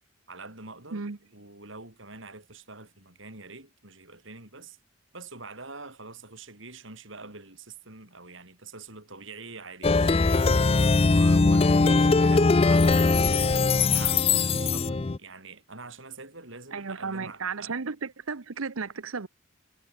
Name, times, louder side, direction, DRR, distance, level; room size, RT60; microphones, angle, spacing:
voice 1, 0.3-1.0 1.3-4.8 5.1-13.3 13.9-17.7, right 3 dB, 65° right, 7.0 m, -45 dB
Plucked string instrument, 9.8-15.2, left 3 dB, 30° left, 0.4 m, -21 dB
voice 2, 16.7-19.3, right 5 dB, 85° right, 0.9 m, -34 dB
head